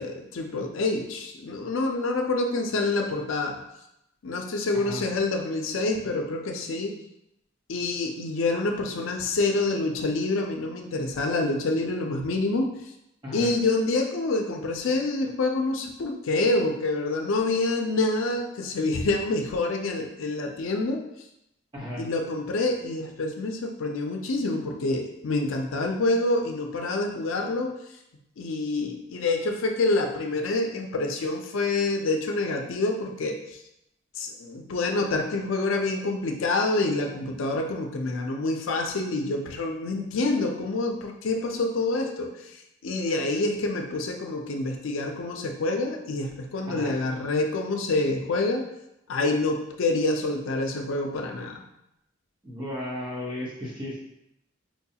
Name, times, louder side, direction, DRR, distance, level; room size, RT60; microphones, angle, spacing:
voice 1, 0.0-3.6 4.2-6.9 7.7-12.7 13.3-21.0 22.0-27.7 28.4-33.4 34.2-42.3 42.8-48.6 49.1-51.6, left 2 dB, 90° left, 3 dB, 0.5 m, -27 dB
voice 2, 13.2-13.5 21.7-22.0 46.7-46.9 52.4-54.0, left 1 dB, 25° right, -6 dB, 0.9 m, -34 dB
4.5 x 2.3 x 2.7 m, 0.82 s
head